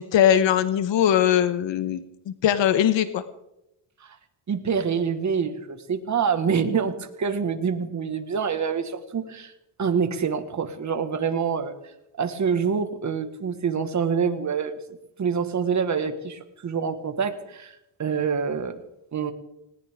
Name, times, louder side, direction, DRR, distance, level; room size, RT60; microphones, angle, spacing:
voice 1, 0.0-3.2, left 10 dB, 75° left, 12 dB, 1.2 m, -21 dB
voice 2, 4.5-9.5 9.8-11.7 12.2-14.7 15.2-18.8 19.1-19.3, right 6 dB, 40° right, 8 dB, 1.7 m, -26 dB
19.5 x 18.5 x 3.7 m, 0.86 s
cardioid pair, 115°, 45 cm